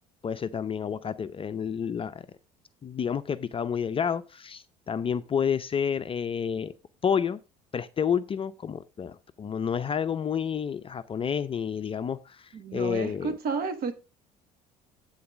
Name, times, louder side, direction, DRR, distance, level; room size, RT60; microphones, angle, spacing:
voice 1, 0.2-2.2 2.8-6.7 7.0-7.4 7.7-13.3, left 7 dB, 25° left, 0.5 m, -30 dB
voice 2, 12.5-13.9, right 5 dB, 45° right, 1.3 m, -31 dB
8.7 x 3.9 x 6.1 m
figure-of-eight pair, 60°, 20 cm